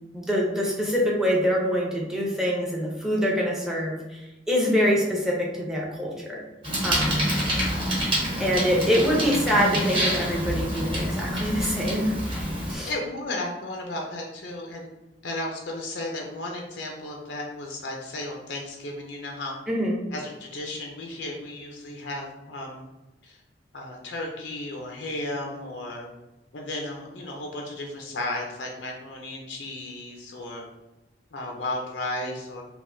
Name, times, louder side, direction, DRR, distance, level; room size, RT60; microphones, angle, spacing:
voice 1, 0.1-4.2 4.5-6.4 6.8-7.2 8.4-12.4 12.7-12.9 19.7-20.0, equal, 5° right, -3 dB, 0.6 m, -25 dB
Bicycle, 6.6-12.7, equal, 30° right, 1.0 m, -27 dB
voice 2, 7.6-8.1 12.9-14.9 15.2-19.5 20.1-22.8 23.2-23.4 23.7-26.1 26.5-30.6 31.3-32.6, left 2 dB, 70° left, 0 dB, 0.5 m, -34 dB
3.5 x 2.5 x 2.6 m, 1.0 s
head